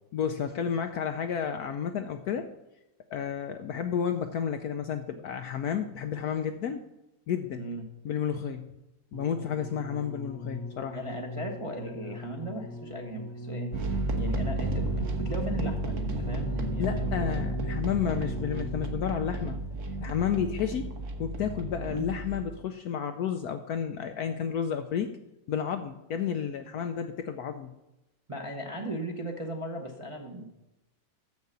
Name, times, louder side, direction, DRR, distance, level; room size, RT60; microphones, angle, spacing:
voice 1, 0.1-2.5 3.1-6.8 7.3-7.7 8.0-8.7 9.1-11.0 16.8-19.6 20.0-20.9 21.2-25.1 25.5-27.7, left 8 dB, 70° left, 7 dB, 0.9 m, -31 dB
sound 1, 9.1-19.2 20.1-20.2, left 1 dB, 20° left, 0.4 m, -39 dB
voice 2, 10.9-17.3 21.9-22.1 28.3-30.5, right 1 dB, 25° right, 0 dB, 0.7 m, -37 dB
sound 2, 13.7-22.4, right 2 dB, 45° right, 1.3 m, -32 dB
7.1 x 6.5 x 6.7 m, 0.97 s
omnidirectional pair, 2.0 m